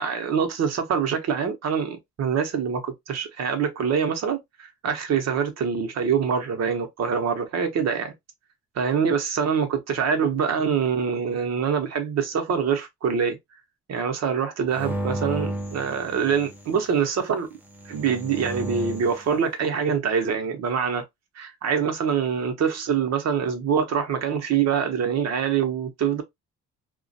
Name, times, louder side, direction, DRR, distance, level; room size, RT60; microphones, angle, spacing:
voice 1, 0.0-8.1 8.7-13.4 13.9-17.5 17.9-21.0 21.4-26.2, right 7 dB, 60° right, 0.8 m, -25 dB
sound 1, 14.7-16.7 17.7-19.2, right 1 dB, 5° right, 0.7 m, -32 dB
2.4 x 2.2 x 2.5 m
cardioid pair, 90°, 30 cm